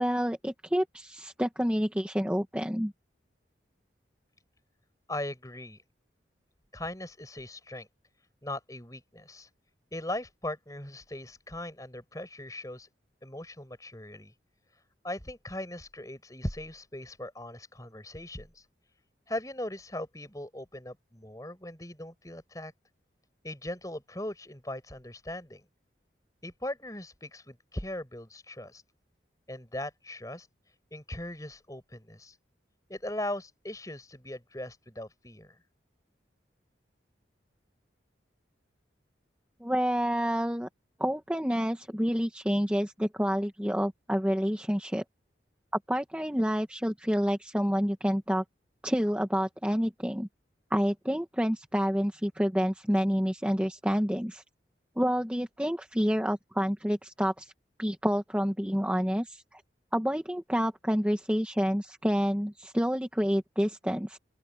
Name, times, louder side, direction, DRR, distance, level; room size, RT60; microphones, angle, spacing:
voice 1, 0.0-2.9 39.6-40.7 41.0-45.0 45.9-48.4 48.8-50.3 50.7-54.4 55.0-57.5 57.8-59.6 59.9-64.2, equal, 5° right, 1.2 m, -28 dB
voice 2, 5.1-5.8 6.7-7.9 8.4-9.5 9.9-12.9 13.2-14.3 15.0-18.6 19.3-22.7 23.4-25.6 26.4-28.8 29.5-30.5 30.9-32.3 32.9-35.6, left 1 dB, 20° left, 5.3 m, -39 dB
open air
head